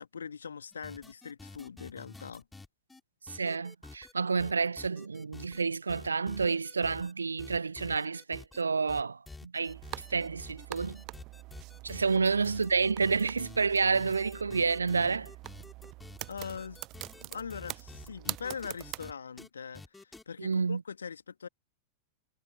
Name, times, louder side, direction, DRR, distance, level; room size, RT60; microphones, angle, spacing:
voice 1, 0.0-2.5 12.1-12.3 16.3-16.8 17.2-21.5, left 6 dB, 70° left, 2.2 m, -42 dB
sound 1, 0.7-3.0 3.3-4.1 4.4-5.6 5.9-7.1 7.4-8.6 8.9-19.1 19.4-19.5 19.7-20.2, left 3 dB, 10° left, 4.3 m, -49 dB
voice 2, 3.3-9.8 10.1-11.0 11.8-15.3 20.4-20.8, right 5 dB, 75° right, 1.3 m, -29 dB
sound 2, 9.7-19.1, right 20 dB, 40° right, 1.0 m, -44 dB
figure-of-eight pair, 90°, 0 cm